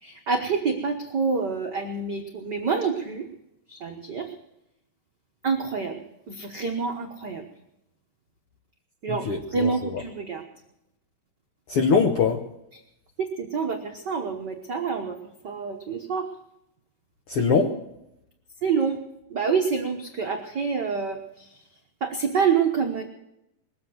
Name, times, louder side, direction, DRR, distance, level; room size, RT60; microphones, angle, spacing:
voice 1, 0.0-3.3 3.7-4.3 5.4-6.0 6.3-7.5 9.0-10.4 13.2-15.2 15.4-16.3 18.6-19.0 19.3-21.5 22.0-23.0, right 5 dB, 90° right, 2 dB, 0.9 m, -27 dB
voice 2, 9.1-10.0 11.7-12.4 17.3-17.8, left 5 dB, 70° left, 3 dB, 1.4 m, -23 dB
21.0 x 8.0 x 7.8 m, 0.84 s
omnidirectional pair, 3.9 m